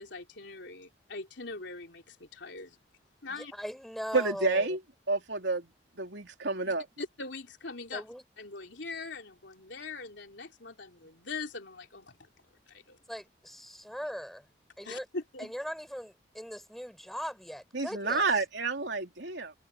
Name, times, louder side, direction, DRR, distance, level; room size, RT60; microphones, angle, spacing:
voice 1, 0.0-2.8 3.2-3.5 6.6-8.0 8.4-12.3 12.7-13.0 14.8-15.5, left 3 dB, 75° left, 3.1 m, -42 dB
voice 2, 3.3-4.7 7.9-8.2 13.1-14.5 14.8-15.1 15.4-18.2, equal, ahead, 6.3 m, -40 dB
voice 3, 4.1-4.8 5.1-5.7 6.0-6.8 17.7-19.5, right 3 dB, 75° right, 3.3 m, -29 dB
head